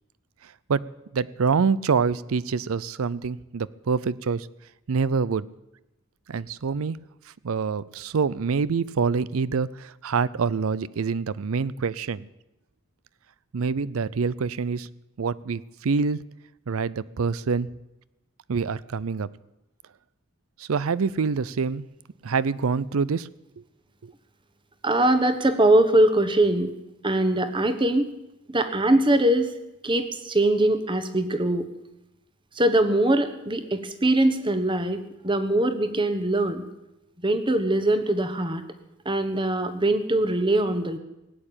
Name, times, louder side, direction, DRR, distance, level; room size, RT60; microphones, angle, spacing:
voice 1, 0.7-4.5 4.9-5.5 6.3-7.0 7.4-12.3 13.5-14.9 15.2-16.2 16.7-17.7 18.5-19.3 20.6-21.9 22.2-23.3 24.0-24.1, right 5 dB, 80° right, 20 dB, 0.5 m, -26 dB
voice 2, 24.8-26.7 27.0-28.1 28.5-29.5 29.8-31.7 32.5-36.6 37.2-38.6 39.0-41.0, right 1 dB, 25° right, 9 dB, 1.2 m, -22 dB
18.0 x 8.8 x 8.9 m, 0.94 s
head